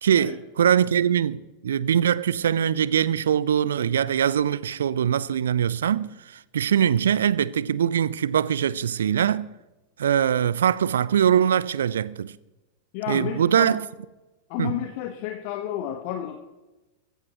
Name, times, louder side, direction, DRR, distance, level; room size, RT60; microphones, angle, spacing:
voice 1, 0.0-9.5 10.0-12.3 13.1-13.8 14.6-14.8, right 9 dB, 65° right, 0.6 m, -22 dB
voice 2, 12.9-13.8 14.5-16.4, left 12 dB, 45° left, 1.3 m, -31 dB
22.5 x 15.5 x 3.0 m
figure-of-eight pair, 90°, 0 cm